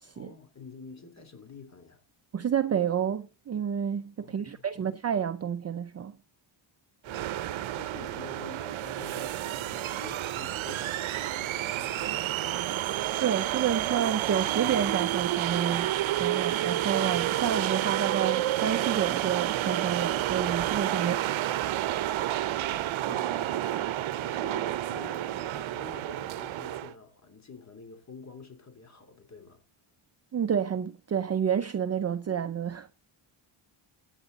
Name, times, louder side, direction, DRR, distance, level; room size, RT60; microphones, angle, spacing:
voice 1, 0.1-2.0 4.2-4.8 7.0-12.7 20.9-21.5 23.1-29.6, left 4 dB, 35° left, 3.1 m, -48 dB
voice 2, 2.3-6.2 13.2-15.9 16.2-21.3 30.3-32.9, right 8 dB, 30° right, 0.5 m, -29 dB
sound 1, 7.1-26.9, right 13 dB, 70° right, 0.8 m, -30 dB
15.5 x 9.1 x 4.0 m
cardioid pair, 125°, 49 cm